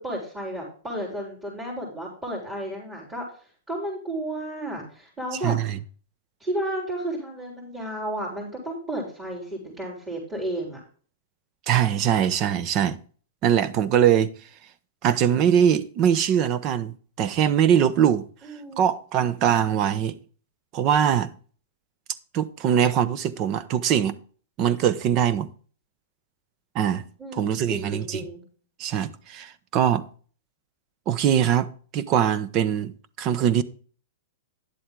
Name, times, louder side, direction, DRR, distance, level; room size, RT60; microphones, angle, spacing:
voice 1, 0.0-3.3 3.7-5.6 6.4-10.8 18.4-18.9 27.2-28.4, right 1 dB, 15° right, 4.5 m, -32 dB
voice 2, 5.4-5.8 11.7-13.0 13.4-14.3 15.0-18.2 18.8-20.2 20.7-21.3 22.3-24.1 24.6-25.5 26.7-27.0 27.3-28.2 28.8-30.1 31.1-33.6, right 9 dB, 40° right, 0.9 m, -22 dB
10.5 x 7.8 x 3.8 m
hypercardioid pair, 125°, 0 cm